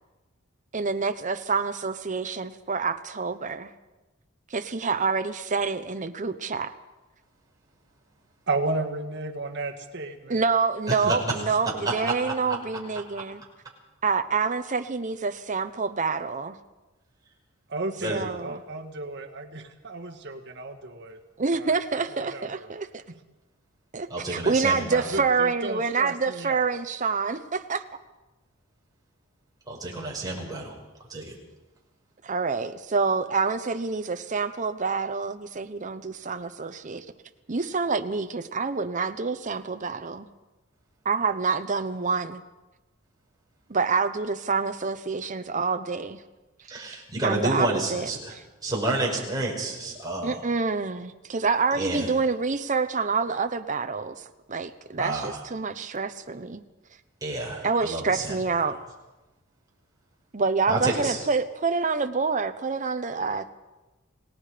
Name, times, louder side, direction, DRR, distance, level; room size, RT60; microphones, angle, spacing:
voice 1, 0.7-3.7 4.5-6.7 10.3-13.4 14.0-16.6 18.1-18.6 21.4-23.0 23.9-27.8 32.2-37.0 37.5-40.3 41.0-42.4 43.7-46.2 47.2-48.4 50.2-54.1 54.5-56.6 57.6-58.8 60.3-63.5, right 4 dB, 40° right, 8 dB, 0.9 m, -27 dB
voice 2, 8.5-10.5 11.0-11.1 17.7-21.2 21.5-21.8 22.1-22.7 25.1-26.7, right 2 dB, 60° right, 3 dB, 1.8 m, -33 dB
voice 3, 24.1-25.0 29.7-30.8 31.1-31.3 46.7-48.3 48.6-50.4 51.8-52.1 55.0-55.4 57.2-58.3 60.7-61.2, right 2 dB, 20° right, -2 dB, 5.7 m, -29 dB
28.5 x 18.0 x 5.1 m, 1.1 s
head